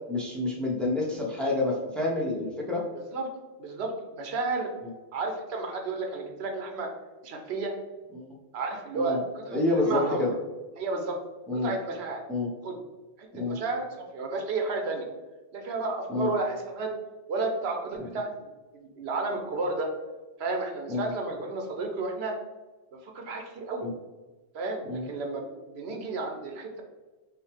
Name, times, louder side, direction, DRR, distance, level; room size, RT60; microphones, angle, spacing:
voice 1, 0.1-2.8 8.1-8.3 8.9-9.2 9.5-10.3 11.5-11.7 12.3-12.5 13.3-13.6 16.1-16.3 20.9-21.1 23.8-23.9 24.8-25.1, left 2 dB, ahead, -2 dB, 0.6 m, -28 dB
voice 2, 3.6-4.7 5.1-6.9 7.2-7.7 8.5-10.3 10.8-11.2 11.5-12.2 12.6-12.8 13.2-15.0 15.5-16.9 17.3-19.9 20.4-22.3 22.9-23.9 24.5-26.8, right 3 dB, 80° right, 3 dB, 1.0 m, -32 dB
5.8 x 2.3 x 3.4 m, 1.2 s
omnidirectional pair, 1.1 m